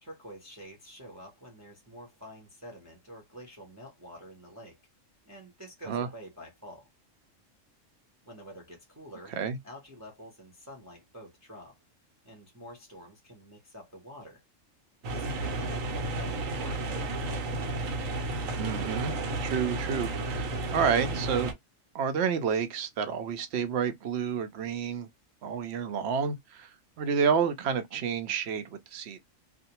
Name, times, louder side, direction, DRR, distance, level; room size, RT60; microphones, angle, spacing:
voice 1, 0.0-4.8 5.3-6.9 8.2-9.3 9.6-11.8 12.2-14.4 15.0-17.5, equal, 15° right, 0.6 m, -48 dB
sound 1, 15.0-21.5, right 2 dB, 85° right, 1.1 m, -32 dB
voice 2, 18.6-19.1 19.4-21.5 21.9-25.1 25.4-26.7 27.0-29.2, right 7 dB, 65° right, 0.7 m, -29 dB
2.5 x 2.0 x 2.8 m
omnidirectional pair, 1.3 m